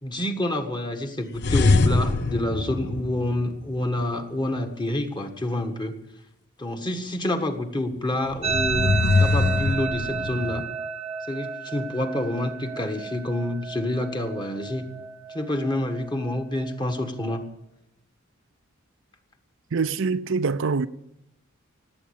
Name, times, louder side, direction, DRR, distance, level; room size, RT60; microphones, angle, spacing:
voice 1, 0.0-5.9 6.6-10.7 11.3-14.9 15.3-17.4, left 1 dB, 20° left, 1.6 m, -28 dB
sound 1, 1.4-3.8 8.3-10.6, left 3 dB, 55° left, 0.8 m, -23 dB
sound 2, 8.4-17.5, right 6 dB, 30° right, 0.9 m, -33 dB
voice 2, 19.7-20.9, right 4 dB, 65° right, 0.6 m, -24 dB
18.5 x 8.7 x 8.7 m
head